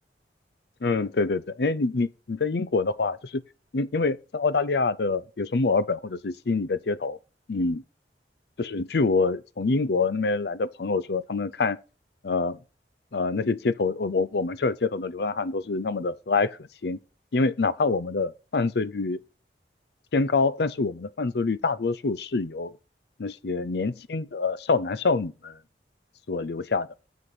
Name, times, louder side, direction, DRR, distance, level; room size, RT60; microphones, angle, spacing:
voice 1, 0.8-3.4 3.7-7.2 7.5-7.8 8.6-11.8 12.2-12.6 13.1-17.0 17.3-19.2 20.1-22.7 23.2-25.6 26.3-26.9, left 3 dB, 65° left, 0.5 m, -26 dB
7.3 x 6.3 x 5.9 m
head